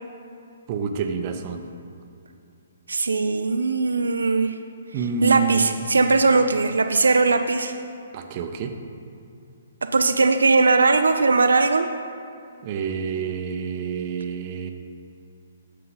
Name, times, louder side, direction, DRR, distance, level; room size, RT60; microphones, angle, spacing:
voice 1, 0.7-1.6 4.9-5.7 8.1-8.7 12.6-14.7, right 6 dB, 35° right, 6 dB, 0.7 m, -28 dB
voice 2, 2.9-4.6 4.9-7.7 9.9-11.9, right 3 dB, 80° right, 7 dB, 0.4 m, -19 dB
9.3 x 6.6 x 4.0 m, 2.5 s
figure-of-eight pair, 135°, 0 cm